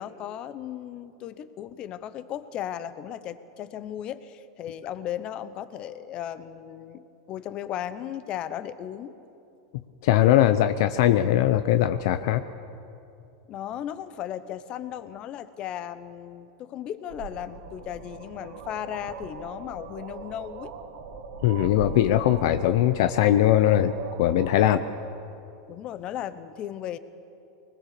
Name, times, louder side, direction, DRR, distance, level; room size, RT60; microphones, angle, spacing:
voice 1, 0.0-9.2 13.5-20.7 24.6-24.8 25.7-27.0, left 10 dB, 40° left, 13 dB, 1.0 m, -36 dB
voice 2, 10.0-12.4 21.4-23.9 24.2-24.8, left 12 dB, 65° left, 10 dB, 0.7 m, -20 dB
sound 1, 17.1-24.7, right 5 dB, 75° right, 1.9 m, -40 dB
21.5 x 20.5 x 6.8 m, 2.7 s
supercardioid pair, 120°, 2 cm